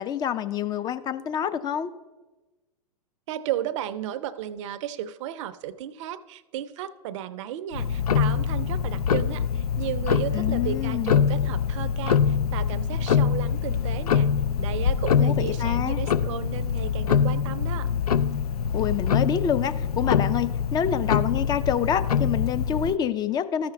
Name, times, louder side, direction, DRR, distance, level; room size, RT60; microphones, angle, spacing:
voice 1, 0.0-1.9 10.3-11.2 15.2-16.0 18.7-23.7, left 9 dB, 20° left, 12 dB, 0.4 m, -27 dB
voice 2, 3.3-14.3 14.6-17.9, right 11 dB, 55° right, 13 dB, 0.5 m, -34 dB
Tick-tock, 7.7-23.0, left 7 dB, 85° left, 0.4 m, -24 dB
13.0 x 5.8 x 3.3 m, 1.2 s
hypercardioid pair, 105°, 19 cm